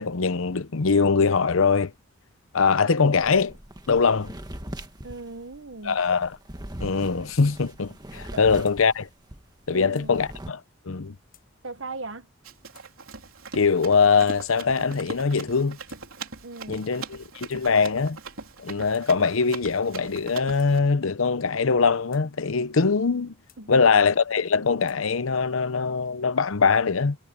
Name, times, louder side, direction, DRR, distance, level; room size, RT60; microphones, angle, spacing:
voice 1, 0.0-1.9 2.5-3.6 3.9-4.3 5.8-6.4 6.8-9.1 9.7-10.6 10.9-11.2 13.5-15.8 16.7-18.2 18.6-23.3 23.7-27.2, left 5 dB, 80° left, 0.8 m, -22 dB
sound 1, 3.1-9.4 9.7-10.5, right 1 dB, 20° right, 1.6 m, -41 dB
voice 2, 5.0-6.0 8.3-8.4 9.7-10.2 11.6-12.3 16.4-17.0 23.6-23.8, right 3 dB, 65° right, 1.3 m, -38 dB
sound 2, 7.3-7.5 7.9-8.0 8.2-8.8 9.5-9.6 9.9-10.1 10.9-11.0 11.3-11.5 12.2-12.3 12.7-12.9 13.6-14.4 15.2-16.1 16.8-17.1 17.5-17.7 18.4-19.1 20.0-20.1 20.6-20.7 21.6-22.3 23.0-23.6 24.3-25.0 25.8-26.4, left 13 dB, 45° left, 7.6 m, -60 dB
Run, 12.4-20.8, right 4 dB, 85° right, 3.5 m, -41 dB
head